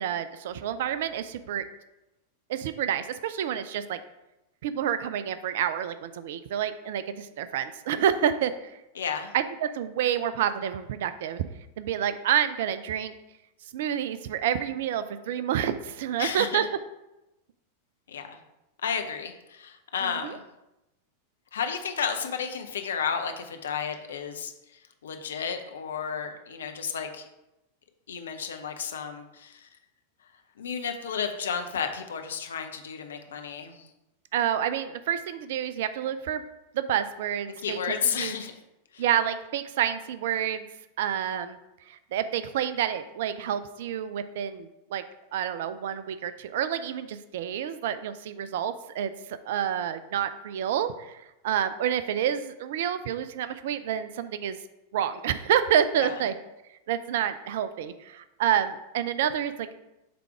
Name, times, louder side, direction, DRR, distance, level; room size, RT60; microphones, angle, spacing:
voice 1, 0.0-1.7 2.5-4.0 4.6-8.8 9.3-11.4 11.8-13.1 13.7-16.6 20.0-20.4 34.3-36.4 36.7-38.3 39.0-40.7 41.0-41.6 41.9-45.0 45.3-49.1 49.5-54.6 54.9-56.3 56.9-59.8, right 9 dB, 55° right, 12 dB, 0.4 m, -28 dB
voice 2, 8.9-9.3 16.2-16.6 18.1-18.4 18.8-20.4 21.5-24.5 25.0-27.2 28.1-29.7 30.6-33.9 37.6-38.5 38.9-39.0 56.0-56.1, left 7 dB, 65° left, 5 dB, 0.7 m, -32 dB
7.5 x 3.5 x 4.8 m, 0.94 s
figure-of-eight pair, 90°, 0 cm